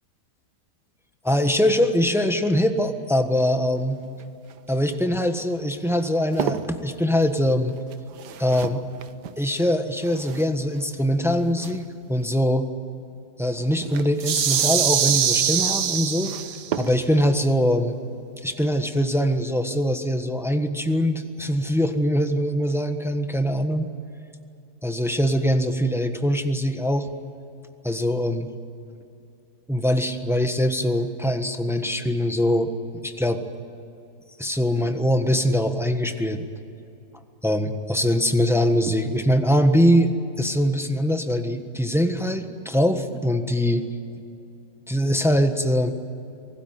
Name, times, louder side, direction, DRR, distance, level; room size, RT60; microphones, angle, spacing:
voice 1, 1.2-4.0 4.7-7.8 8.4-8.8 9.4-11.8 12.1-12.7 13.4-16.3 16.8-18.0 18.4-23.8 24.8-27.1 27.8-28.5 29.7-33.4 34.4-36.5 37.4-43.9 44.9-45.9, equal, ahead, 7 dB, 1.2 m, -22 dB
sound 1, 3.5-12.3 13.5-17.4 19.0-19.3 19.6-19.7, right 8 dB, 80° right, 1.5 m, -37 dB
sound 2, 14.2-16.8, right 8 dB, 50° right, 0.7 m, -22 dB
25.0 x 18.5 x 9.4 m, 2.6 s
omnidirectional pair, 1.8 m